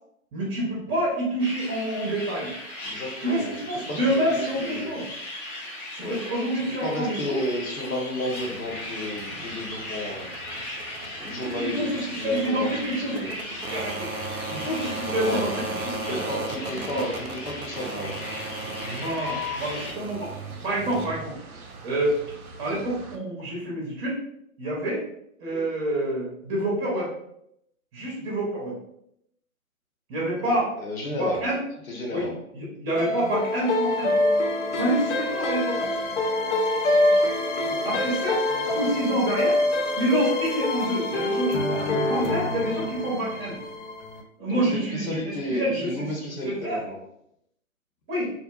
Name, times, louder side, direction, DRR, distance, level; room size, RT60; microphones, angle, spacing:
voice 1, 0.3-2.5 3.2-5.1 6.0-7.4 11.4-14.1 14.5-16.2 16.9-17.0 18.8-21.4 21.8-22.2 22.6-24.2 24.6-25.0 25.4-27.1 27.9-28.8 30.1-30.7 31.2-31.6 32.1-34.1 34.8-35.8 37.8-38.4 38.6-39.6 40.0-43.6 44.4-46.1 46.4-46.8 48.1-48.3, right 1 dB, 20° right, -5 dB, 0.7 m, -27 dB
sound 1, 1.4-19.9, left 1 dB, 20° left, 0.7 m, -38 dB
voice 2, 2.8-3.5 3.9-4.9 6.0-6.2 6.5-10.3 11.1-13.3 15.1-15.5 15.9-18.2 25.5-25.7 30.4-31.5 31.9-32.4 37.6-37.9 44.7-46.9, left 1 dB, 70° left, -2 dB, 1.0 m, -33 dB
sound 2, 8.4-23.2, right 2 dB, 85° right, 0.5 m, -36 dB
sound 3, 33.0-44.2, left 1 dB, 55° left, 0.5 m, -25 dB
2.5 x 2.1 x 2.3 m, 0.76 s
figure-of-eight pair, 125°, 42 cm